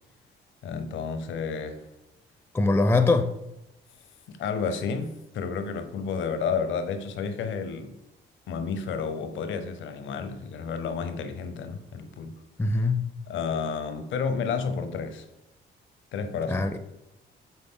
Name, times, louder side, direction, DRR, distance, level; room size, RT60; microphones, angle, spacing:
voice 1, 0.6-1.9 4.3-8.0 8.5-12.3 13.3-15.2 16.1-16.7, left 5 dB, 75° left, 0.8 m, -31 dB
voice 2, 2.5-3.3 12.6-13.1 16.5-16.8, left 3 dB, 10° left, 0.5 m, -22 dB
8.1 x 3.7 x 3.8 m
cardioid pair, 90°, 20 cm